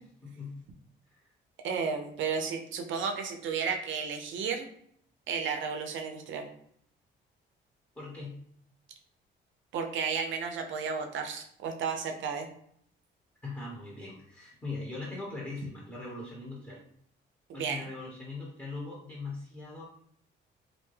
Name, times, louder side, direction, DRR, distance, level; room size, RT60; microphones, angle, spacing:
voice 1, 0.2-0.6 1.1-1.2 7.9-8.4 13.4-16.8 17.5-19.8, left 3 dB, 10° left, -5 dB, 0.9 m, -40 dB
voice 2, 1.6-4.7 5.3-6.5 9.7-12.5 17.5-17.8, right 6 dB, 75° right, 4 dB, 0.5 m, -33 dB
2.6 x 2.2 x 3.2 m, 0.67 s
cardioid pair, 90°, 20 cm